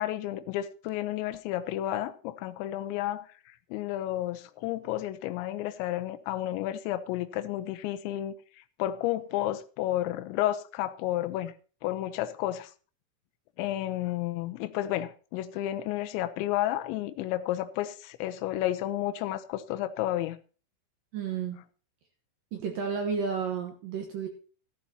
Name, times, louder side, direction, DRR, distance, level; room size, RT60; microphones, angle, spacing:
voice 1, 0.0-3.3 3.7-8.3 8.8-11.5 11.8-12.7 13.6-20.4, left 14 dB, 75° left, 2.9 m, -31 dB
voice 2, 21.1-21.6 22.5-24.3, right 6 dB, 75° right, 2.1 m, -32 dB
14.5 x 12.5 x 2.9 m
omnidirectional pair, 5.8 m